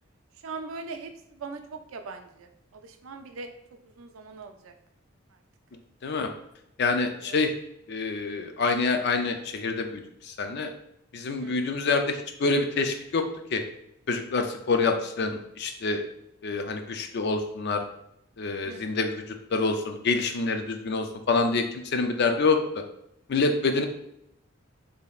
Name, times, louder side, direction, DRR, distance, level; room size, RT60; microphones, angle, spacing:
voice 1, 0.4-3.5 3.8-4.7 7.2-7.4 11.4-11.7 18.6-19.0, right 4 dB, 75° right, 7 dB, 0.4 m, -41 dB
voice 2, 6.8-7.5 7.9-10.7 11.1-13.2 13.5-13.6 14.1-15.3 15.6-16.0 16.4-17.9 18.4-22.6 23.3-23.9, left 3 dB, 55° left, 6 dB, 0.4 m, -26 dB
5.0 x 2.7 x 2.4 m, 0.78 s
head